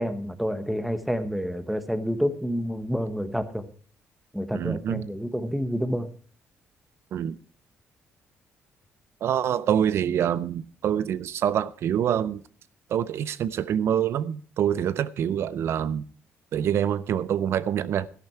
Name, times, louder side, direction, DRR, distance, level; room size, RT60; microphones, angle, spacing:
voice 1, 0.0-3.6 4.3-6.1, equal, ahead, 1.2 m, -28 dB
voice 2, 4.5-5.1 7.1-7.4 9.2-12.4 12.9-16.0 16.5-18.1, right 9 dB, 65° right, 0.5 m, -26 dB
12.5 x 11.5 x 4.5 m
cardioid pair, 125°, 5 cm